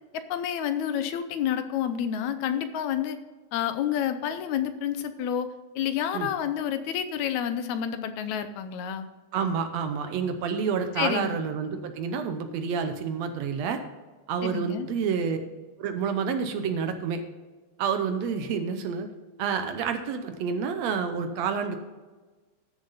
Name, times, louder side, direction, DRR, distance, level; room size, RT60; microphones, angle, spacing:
voice 1, 0.1-3.2 3.5-9.1 11.0-11.4 14.4-14.9, left 9 dB, 80° left, 10 dB, 2.0 m, -29 dB
voice 2, 9.3-13.8 14.3-15.4 15.8-17.2 17.8-19.1 19.4-21.8, right 6 dB, 70° right, 8 dB, 1.8 m, -29 dB
13.5 x 6.9 x 4.1 m, 1.3 s
omnidirectional pair, 3.4 m